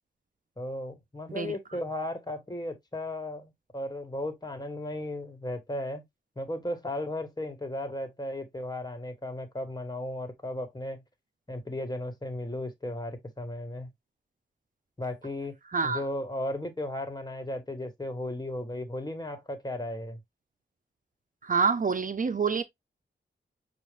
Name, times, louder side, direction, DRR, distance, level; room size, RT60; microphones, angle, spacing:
voice 1, 0.6-6.0 6.3-11.0 11.5-13.9 15.0-15.5 15.8-20.2, left 1 dB, 20° left, 1.6 m, -35 dB
voice 2, 15.7-16.0 21.4-22.6, right 5 dB, 45° right, 0.6 m, -27 dB
6.4 x 2.5 x 3.3 m
cardioid pair, 55°, 19 cm